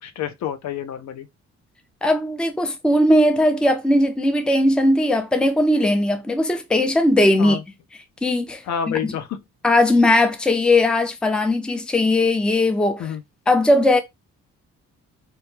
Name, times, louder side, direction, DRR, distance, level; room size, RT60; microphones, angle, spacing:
voice 1, 0.0-1.3 7.4-7.6 8.6-9.4 13.0-13.2, left 8 dB, 65° left, 0.6 m, -28 dB
voice 2, 2.0-7.6 8.2-9.1 9.6-13.1 13.5-14.0, left 1 dB, 5° left, 0.4 m, -18 dB
2.2 x 2.2 x 3.0 m
cardioid pair, 90°, 30 cm